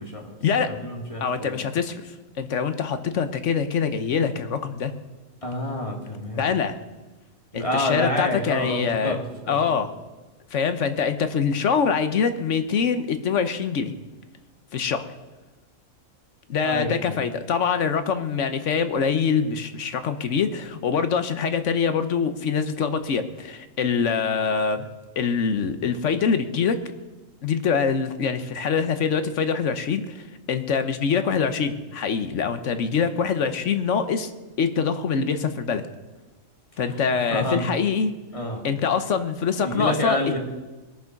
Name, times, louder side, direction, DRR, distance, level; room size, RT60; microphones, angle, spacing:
voice 1, 0.0-0.3 0.7-1.7 5.4-6.6 7.5-9.2 9.5-9.6 16.6-17.2 36.9-37.0 37.3-37.7 38.3-38.7 39.6-40.4, left 1 dB, 25° left, 0 dB, 2.1 m, -28 dB
voice 2, 1.2-2.0 2.4-4.9 6.4-6.7 7.5-9.2 9.5-9.9 10.5-13.9 14.7-15.1 16.5-24.9 25.2-26.8 27.4-34.3 34.6-35.8 36.8-38.1 38.6-40.4, left 6 dB, 65° left, 10 dB, 1.2 m, -24 dB
21.0 x 7.0 x 5.9 m, 1.2 s
omnidirectional pair, 1.4 m